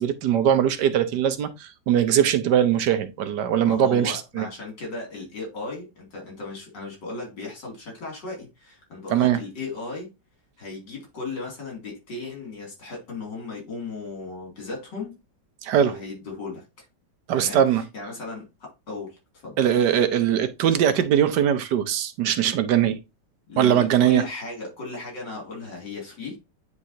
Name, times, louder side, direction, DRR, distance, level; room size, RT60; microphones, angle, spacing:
voice 1, 0.0-4.5 9.1-9.4 15.6-16.0 17.3-17.8 19.6-23.0 23.6-24.2, right 9 dB, 75° right, 1.4 m, -21 dB
voice 2, 3.6-10.1 10.6-15.2 15.8-16.6 17.4-19.6 23.5-26.4, left 3 dB, 75° left, 3.4 m, -36 dB
9.8 x 3.7 x 2.7 m
omnidirectional pair, 1.9 m